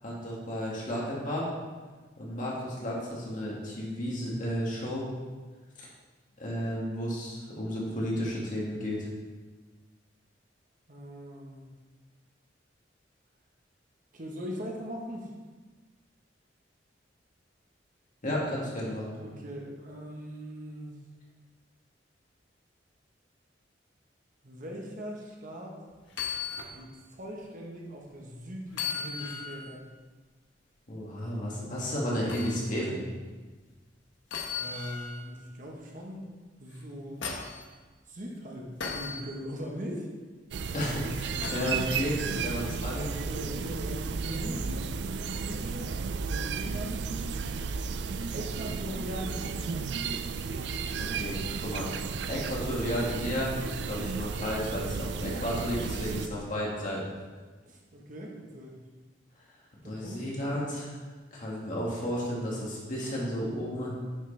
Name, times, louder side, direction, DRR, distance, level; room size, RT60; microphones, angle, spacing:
voice 1, 0.0-1.5 2.2-5.1 5.8-5.9 6.4-9.1 18.2-19.2 30.9-33.0 40.7-42.2 42.4-43.1 50.9-51.9 52.2-53.5 53.9-57.1 59.8-61.0 61.3-63.9, equal, 45° left, -4 dB, 2.1 m, -33 dB
voice 2, 10.9-11.6 14.1-15.3 19.2-20.9 24.4-25.8 26.7-29.9 34.6-36.2 36.6-37.2 38.1-40.1 42.3-42.6 43.2-44.9 45.3-45.9 46.2-47.0 48.3-49.9 57.6-58.8 59.8-60.3, equal, 45° right, -1 dB, 1.3 m, -40 dB
sound 1, 26.1-26.7 27.2-27.3 28.7-29.7 32.3-32.6 34.3-35.2 36.7-37.6 38.8-39.2 41.4-41.8 43.6-43.7, left 6 dB, 85° left, 1.2 m, -36 dB
sound 2, 40.5-56.3, right 5 dB, 65° right, 0.4 m, -34 dB
9.4 x 6.5 x 3.4 m, 1.4 s
head